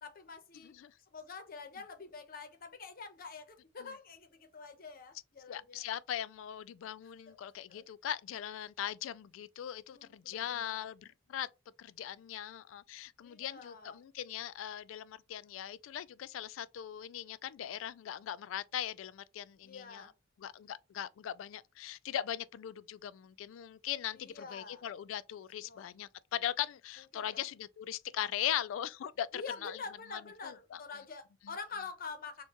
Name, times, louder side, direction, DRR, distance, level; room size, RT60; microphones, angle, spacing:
voice 1, 0.0-0.7 1.1-5.8 7.3-7.4 7.7-7.9 9.9-10.9 13.2-14.0 19.6-20.1 24.1-24.9 25.6-25.9 27.1-27.5 29.3-32.4, left 4 dB, 50° left, 0.8 m, -46 dB
voice 2, 0.6-0.9 3.8-3.9 5.5-11.5 11.8-20.1 20.4-29.8 30.1-30.8 31.4-31.5, left 10 dB, 85° left, 0.3 m, -40 dB
4.4 x 2.3 x 2.9 m
head